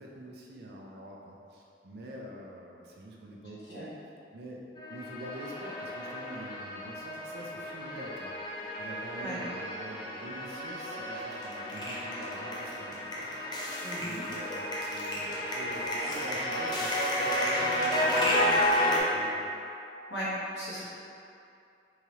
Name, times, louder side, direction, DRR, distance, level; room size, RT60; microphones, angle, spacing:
voice 1, 0.0-3.9 4.3-4.6 4.9-8.3 8.8-18.4 19.1-19.4, equal, 65° right, -2 dB, 0.5 m, -45 dB
sound 1, 4.8-19.0, left 1 dB, 25° left, 0.5 m, -32 dB
voice 2, 13.8-14.2 20.1-20.9, equal, 80° left, -9 dB, 1.1 m, -36 dB
3.6 x 3.2 x 2.9 m, 2.6 s
head